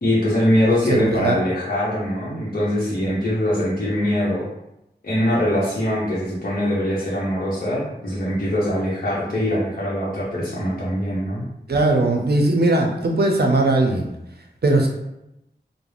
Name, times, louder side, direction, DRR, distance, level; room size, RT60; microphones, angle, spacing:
voice 1, 0.0-4.5 5.0-11.4, left 1 dB, 55° left, -8 dB, 0.8 m, -22 dB
voice 2, 0.9-1.4 11.7-14.1 14.6-14.9, right 2 dB, 65° right, 2 dB, 0.5 m, -19 dB
2.4 x 2.1 x 3.3 m, 0.87 s
wide cardioid pair, 45°, 18 cm